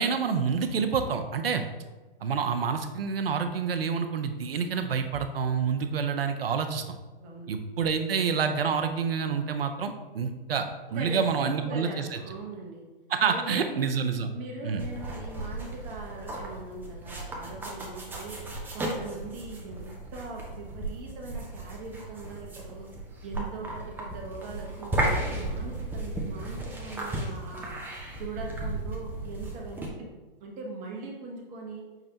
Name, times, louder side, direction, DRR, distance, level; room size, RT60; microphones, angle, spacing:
voice 1, 0.0-1.6 2.2-7.0 7.5-12.2 13.1-14.3 14.6-14.8, right 6 dB, 80° right, 7 dB, 0.6 m, -28 dB
voice 2, 7.2-7.5 10.9-12.8 13.3-13.8 14.3-18.4 18.7-22.9 23.2-27.7 28.1-30.1 30.4-31.8, right 3 dB, 25° right, 0 dB, 1.0 m, -41 dB
sound 1, 14.8-29.9, right 1 dB, 5° right, 0.6 m, -35 dB
5.9 x 3.2 x 2.8 m, 1.2 s
hypercardioid pair, 125°, 29 cm